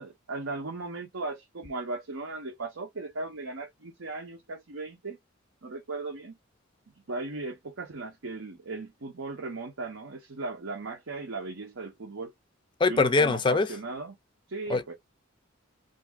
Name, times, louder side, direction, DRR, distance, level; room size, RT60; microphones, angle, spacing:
voice 1, 0.0-5.2 5.6-6.4 7.1-12.3 12.9-14.2 14.5-14.9, right 3 dB, 80° right, 0.8 m, -37 dB
voice 2, 12.8-13.7 14.7-14.9, left 3 dB, 25° left, 0.4 m, -23 dB
2.6 x 2.6 x 3.4 m
head